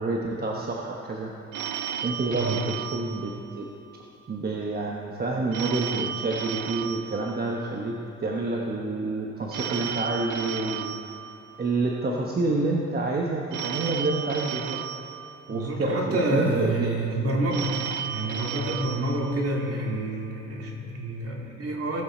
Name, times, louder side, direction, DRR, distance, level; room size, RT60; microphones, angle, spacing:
voice 1, 0.0-1.3 2.0-3.7 4.3-11.0 11.6-14.8 15.5-17.0, right 2 dB, 30° right, -1 dB, 1.1 m, -28 dB
Telephone, 1.5-4.0 5.5-8.0 9.5-12.0 13.5-16.0 17.5-20.0, right 8 dB, 80° right, 0.6 m, -34 dB
voice 2, 2.3-2.6 15.5-22.0, right 2 dB, 50° right, -1 dB, 2.3 m, -28 dB
17.0 x 7.5 x 4.3 m, 2.9 s
cardioid pair, 90°, 30 cm